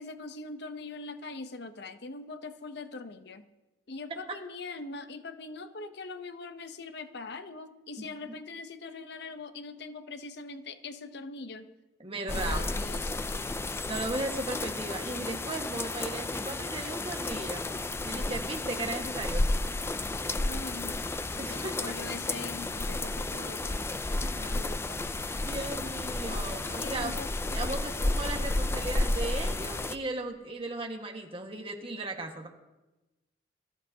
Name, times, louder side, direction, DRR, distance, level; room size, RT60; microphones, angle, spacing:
voice 1, 0.0-3.4 3.9-11.7 12.3-13.7 20.3-21.1 21.5-23.9 24.4-25.0 26.8-27.8, left 3 dB, 65° left, 9 dB, 0.8 m, -42 dB
voice 2, 12.0-12.7 13.8-17.7 18.0-19.4 21.4-21.7 24.1-24.6 25.4-27.1 27.5-32.5, right 2 dB, 30° right, 2 dB, 1.6 m, -36 dB
sound 1, 12.3-30.0, left 2 dB, 15° left, 0.4 m, -32 dB
22.0 x 14.0 x 2.8 m, 1.1 s
head